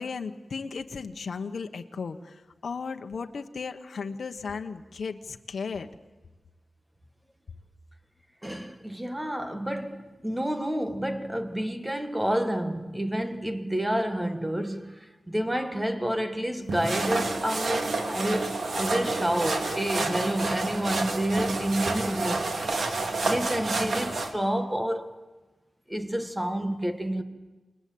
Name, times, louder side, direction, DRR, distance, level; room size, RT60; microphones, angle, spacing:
voice 1, 0.0-5.9, left 5 dB, 65° left, 1.2 m, -35 dB
voice 2, 8.4-22.5 23.2-25.2 25.9-27.2, right 1 dB, 10° right, 1.5 m, -29 dB
sound 1, 16.7-24.3, right 3 dB, 60° right, 2.6 m, -29 dB
28.5 x 20.5 x 8.7 m
wide cardioid pair, 165°, 0 cm